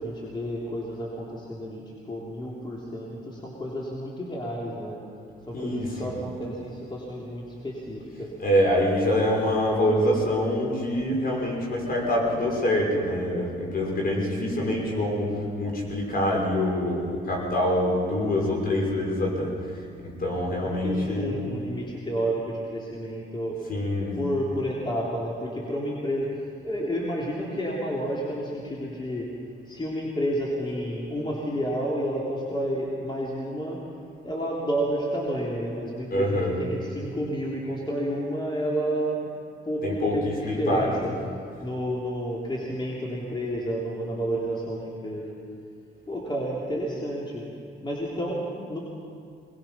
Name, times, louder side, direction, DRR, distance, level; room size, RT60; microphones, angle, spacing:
voice 1, 0.0-5.0 5.4-8.3 14.1-14.3 20.3-23.6 24.1-29.3 29.7-33.8 34.2-39.2 39.6-41.1 41.6-45.3 46.1-47.4 47.8-48.8, equal, 25° left, -4 dB, 3.5 m, -30 dB
voice 2, 5.5-5.9 8.4-15.3 15.6-19.5 20.2-21.3 23.7-24.2 36.1-36.6 39.8-40.9, left 1 dB, 50° left, -1 dB, 6.1 m, -25 dB
22.0 x 20.5 x 5.8 m, 2.4 s
cardioid pair, 90°, 20 cm